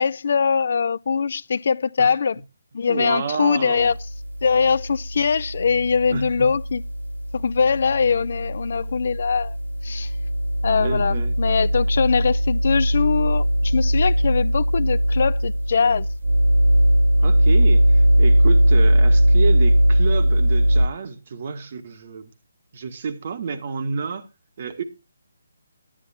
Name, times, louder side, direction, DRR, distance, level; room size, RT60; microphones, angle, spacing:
voice 1, 0.0-2.4 2.7-3.9 4.4-6.8 7.3-9.6 9.8-10.1 10.6-16.1, left 5 dB, 60° left, 0.5 m, -22 dB
voice 2, 2.9-3.9 6.1-6.5 10.8-11.4 17.2-22.3 22.7-24.3 24.6-24.8, right 5 dB, 50° right, 1.7 m, -29 dB
sound 1, 3.8-20.9, equal, 85° right, 0.8 m, -20 dB
10.0 x 9.6 x 4.3 m
hypercardioid pair, 155°, 0 cm